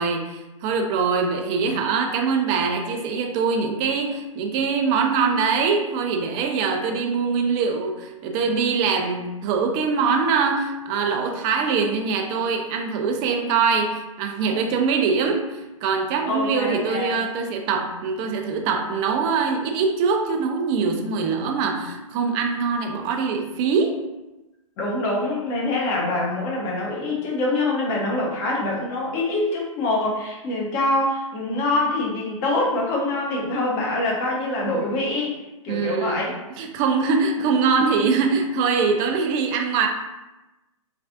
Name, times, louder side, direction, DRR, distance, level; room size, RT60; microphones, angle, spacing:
voice 1, 0.0-24.0 35.7-36.2 36.5-39.9, right 5 dB, 30° right, 3 dB, 0.4 m, -23 dB
voice 2, 16.2-17.2 24.8-35.4 35.6-36.4, left 2 dB, 35° left, -3 dB, 0.9 m, -25 dB
3.2 x 2.4 x 2.4 m, 1.0 s
hypercardioid pair, 120°, 18 cm